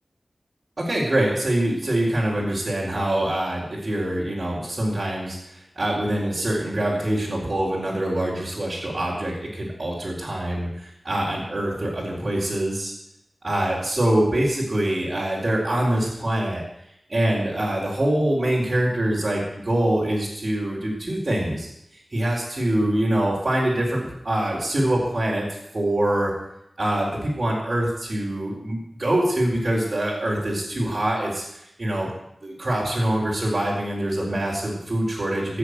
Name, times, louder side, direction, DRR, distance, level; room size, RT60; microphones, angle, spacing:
voice 1, 0.8-12.9 13.4-16.6 17.1-26.3 26.8-32.1 32.4-35.6, right 1 dB, 50° right, -5 dB, 4.2 m, -24 dB
15.0 x 7.5 x 8.1 m, 0.82 s
wide cardioid pair, 60°, 0 cm